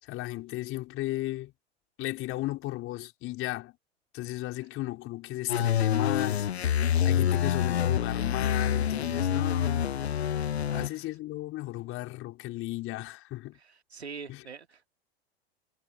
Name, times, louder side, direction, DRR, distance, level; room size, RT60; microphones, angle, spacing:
voice 1, 0.0-1.5 2.0-3.8 4.1-6.5 7.0-9.9 10.7-13.6 14.3-14.4, left 17 dB, 40° left, 4.5 m, -35 dB
sound 1, 5.5-10.9, left 9 dB, 85° left, 0.7 m, -27 dB
voice 2, 10.6-11.1 13.6-14.9, right 5 dB, 90° right, 2.4 m, -44 dB
hypercardioid pair, 90°, 32 cm